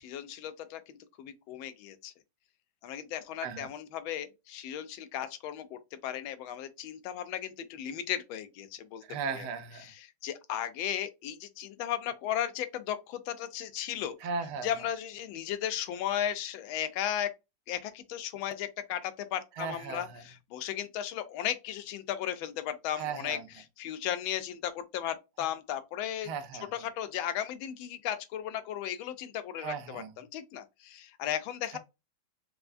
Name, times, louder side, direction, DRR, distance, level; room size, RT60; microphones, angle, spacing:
voice 1, 0.0-2.1 2.8-9.0 9.3-9.5 9.8-14.2 14.6-17.3 17.7-26.3 26.7-31.8, left 10 dB, 85° left, 1.4 m, -35 dB
voice 2, 9.1-9.9 14.2-14.7 19.6-20.2 23.0-23.5 26.2-26.7 29.6-30.1 31.7-31.8, right 5 dB, 90° right, 1.5 m, -37 dB
4.5 x 2.1 x 2.5 m
omnidirectional pair, 2.2 m